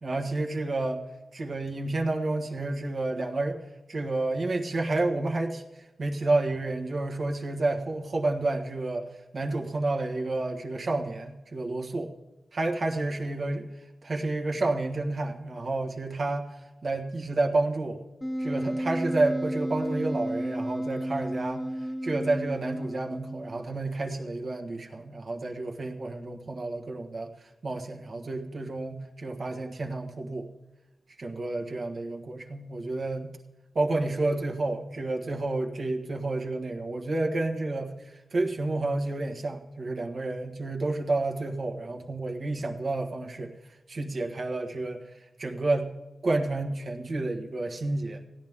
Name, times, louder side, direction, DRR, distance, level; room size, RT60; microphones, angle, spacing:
voice 1, 0.0-1.0 1.3-3.6 3.9-5.6 6.0-9.0 9.3-12.1 12.5-13.7 14.0-16.5 16.8-18.0 18.4-21.6 22.0-27.3 27.6-30.5 31.2-33.3 33.7-43.5 43.9-45.0 45.4-46.0 46.2-48.2, right 2 dB, 65° right, 3 dB, 1.5 m, -30 dB
Wind instrument woodwind instrument, 18.2-23.6, equal, 20° left, 1.0 m, -32 dB
16.5 x 11.0 x 3.6 m, 1.1 s
cardioid pair, 60°, 0 cm